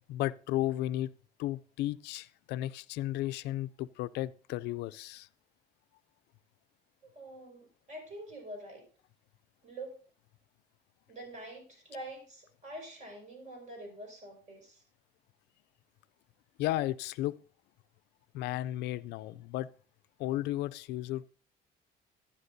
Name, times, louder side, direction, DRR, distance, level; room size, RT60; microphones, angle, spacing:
voice 1, 0.1-1.1 1.4-5.3 16.6-17.4 18.3-19.7 20.2-21.3, left 15 dB, 80° left, 0.4 m, -34 dB
voice 2, 7.0-8.8 9.6-10.0 11.1-14.8, right 1 dB, 45° right, 5.1 m, -46 dB
13.0 x 9.9 x 2.6 m
cardioid pair, 110°, 17 cm